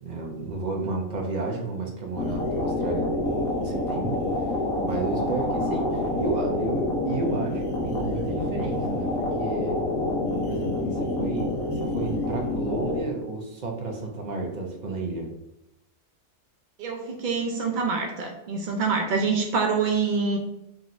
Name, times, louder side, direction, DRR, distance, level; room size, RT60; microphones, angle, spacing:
voice 1, 0.0-4.5 4.8-9.8 10.4-15.3, right 3 dB, 40° right, 1 dB, 0.7 m, -32 dB
sound 1, 2.1-13.0, left 1 dB, 80° left, 1.3 m, -27 dB
voice 2, 16.8-20.4, right 5 dB, 75° right, 2 dB, 0.4 m, -26 dB
5.3 x 2.9 x 2.5 m, 0.86 s
omnidirectional pair, 1.4 m